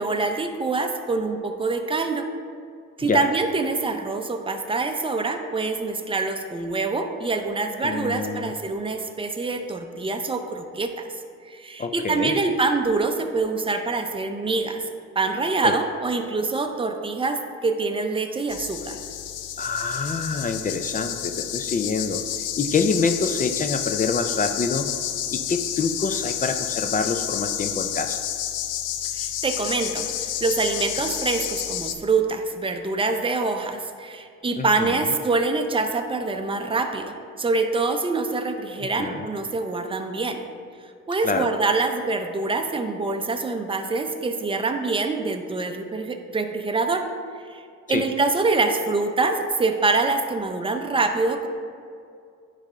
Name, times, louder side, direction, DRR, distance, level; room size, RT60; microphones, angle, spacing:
voice 1, 0.0-2.3 3.0-11.1 11.5-14.8 15.2-19.0 29.1-40.5 41.1-47.1 47.5-47.6 47.9-51.5, right 3 dB, 20° right, 5 dB, 0.6 m, -25 dB
voice 2, 7.8-8.5 11.8-12.4 15.6-15.7 19.6-24.9 25.3-28.2 34.6-35.1 38.8-39.3 41.2-41.5 47.9-48.0, left 4 dB, 30° left, 7 dB, 0.4 m, -26 dB
sound 1, 18.5-31.9, left 10 dB, 85° left, 0.5 m, -30 dB
9.7 x 3.3 x 3.6 m, 2.3 s
cardioid pair, 90°, 30 cm